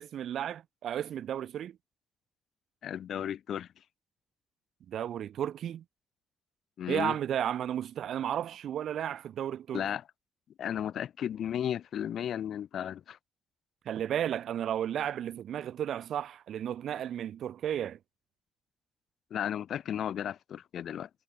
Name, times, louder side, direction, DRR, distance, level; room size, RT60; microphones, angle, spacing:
voice 1, 0.0-1.8 4.9-5.8 6.9-9.9 13.9-18.0, right 10 dB, 75° right, 2.0 m, -33 dB
voice 2, 2.8-3.7 6.8-7.2 9.7-10.0 10.6-13.2 19.3-21.1, left 9 dB, 70° left, 0.7 m, -34 dB
wide cardioid pair, 150°, 0 cm